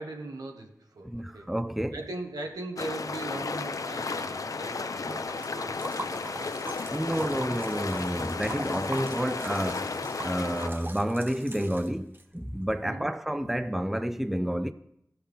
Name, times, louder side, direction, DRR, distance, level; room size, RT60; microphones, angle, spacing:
voice 1, 0.0-1.5 1.9-6.4 12.8-13.1, right 2 dB, 85° right, 1.2 m, -40 dB
voice 2, 1.0-2.0 6.9-9.9 10.2-14.7, equal, 5° right, 0.4 m, -30 dB
sound 1, 2.8-10.7, left 4 dB, 65° left, 0.5 m, -33 dB
Liquid, 5.1-12.2, right 1 dB, 35° right, 0.7 m, -41 dB
15.0 x 5.7 x 3.5 m
wide cardioid pair, 50°, 6 cm